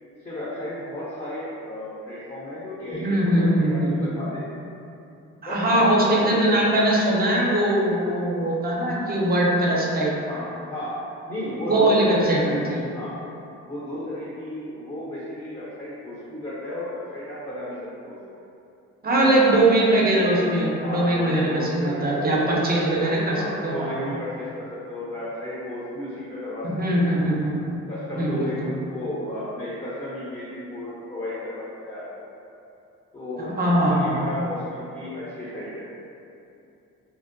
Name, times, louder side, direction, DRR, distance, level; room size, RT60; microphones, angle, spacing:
voice 1, 0.2-4.6 5.4-6.4 10.1-10.9 11.3-12.4 12.9-13.1 13.6-18.2 19.2-19.7 20.8-22.2 23.0-27.0 27.9-32.1 33.1-35.9, left 1 dB, 20° left, -8 dB, 0.5 m, -33 dB
voice 2, 3.0-4.1 5.4-10.2 11.7-12.9 19.0-24.0 26.7-27.6 28.2-28.7 33.4-34.3, right 1 dB, 30° right, -4 dB, 0.5 m, -21 dB
2.6 x 2.0 x 2.5 m, 2.7 s
cardioid pair, 90°, 30 cm